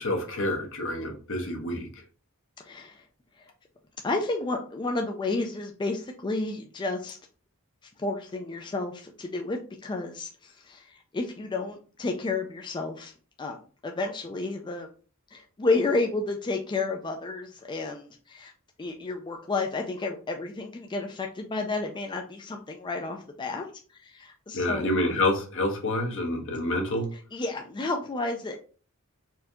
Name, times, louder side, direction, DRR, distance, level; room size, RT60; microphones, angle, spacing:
voice 1, 0.0-1.9 24.5-27.1, left 1 dB, 65° left, 3 dB, 1.1 m, -28 dB
voice 2, 2.6-3.0 3.4-3.5 4.0-7.2 8.0-13.1 13.4-14.9 15.3-18.5 18.8-24.9 27.1-28.6, left 3 dB, 20° left, 2 dB, 0.4 m, -31 dB
4.4 x 2.7 x 3.5 m, 0.39 s
head